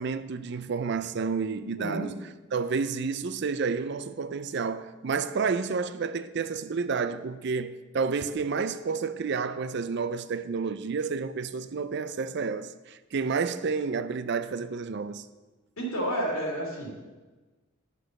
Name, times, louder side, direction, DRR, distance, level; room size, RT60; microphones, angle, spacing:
voice 1, 0.0-2.1 2.5-15.2, right 5 dB, 50° right, 0.4 m, -30 dB
voice 2, 1.8-2.1 15.8-16.9, right 1 dB, 75° left, 3.1 m, -30 dB
9.8 x 6.3 x 6.5 m
head